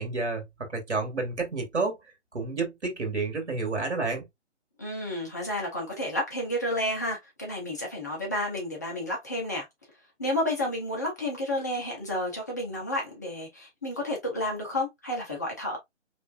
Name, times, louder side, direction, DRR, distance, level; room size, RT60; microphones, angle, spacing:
voice 1, 0.0-2.0 2.3-4.2, right 3 dB, 65° right, 2.1 m, -30 dB
voice 2, 4.8-9.7 10.2-15.8, left 1 dB, 15° left, 0.5 m, -31 dB
4.3 x 3.3 x 2.4 m
figure-of-eight pair, 145°, 36 cm